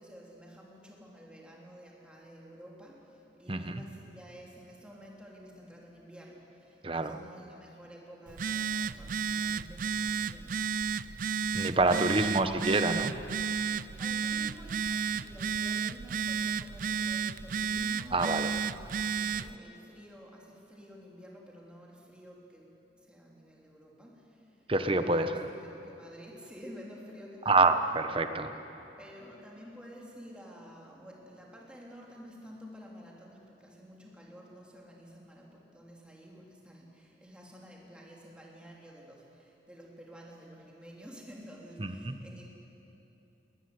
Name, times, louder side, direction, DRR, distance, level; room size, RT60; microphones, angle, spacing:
voice 1, 0.0-12.1 13.7-22.7 23.0-24.7 25.0-25.4 25.8-27.8 29.0-42.4, equal, 5° right, -3 dB, 3.7 m, -51 dB
voice 2, 3.5-3.8 6.8-7.2 11.5-13.1 18.1-18.5 24.7-25.5 27.5-28.6 41.8-42.1, right 3 dB, 30° right, 9 dB, 1.1 m, -27 dB
Telephone, 8.3-19.5, right 6 dB, 50° right, 0.4 m, -32 dB
21.0 x 20.0 x 9.8 m, 2.9 s
head